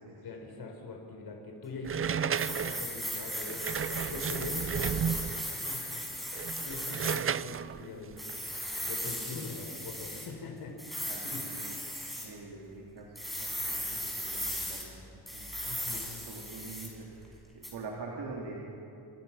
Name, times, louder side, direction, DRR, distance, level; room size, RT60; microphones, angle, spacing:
voice 1, 0.2-3.6 3.9-6.0 6.6-8.2 8.8-11.4 15.6-16.2, left 3 dB, 70° left, 2 dB, 4.3 m, -43 dB
sound 1, 1.8-5.5 6.2-9.2, right 8 dB, 35° right, 0.5 m, -34 dB
sound 2, 2.3-7.2 8.2-10.3 10.8-12.3 13.1-14.8 15.3-17.0 17.6-17.7, equal, ahead, 6.5 m, -37 dB
voice 2, 11.0-15.5 15.9-18.5, right 3 dB, 80° right, -2 dB, 3.7 m, -45 dB
28.5 x 26.0 x 5.9 m, 2.8 s
wide cardioid pair, 125°, 40 cm